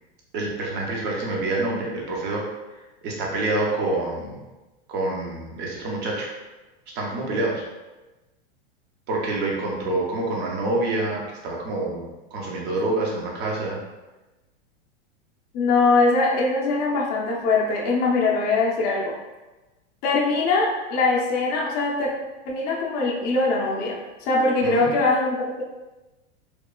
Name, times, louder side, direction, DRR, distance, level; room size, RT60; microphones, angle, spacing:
voice 1, 0.3-2.5 3.0-4.4 4.9-6.3 6.9-7.6 9.1-12.0 12.3-13.8 24.6-24.9, right 2 dB, 35° right, -2 dB, 0.6 m, -27 dB
voice 2, 15.5-19.1 20.0-22.1 22.5-25.6, left 3 dB, 30° left, -3 dB, 0.5 m, -22 dB
3.0 x 2.3 x 2.2 m, 1.1 s
supercardioid pair, 140°, 32 cm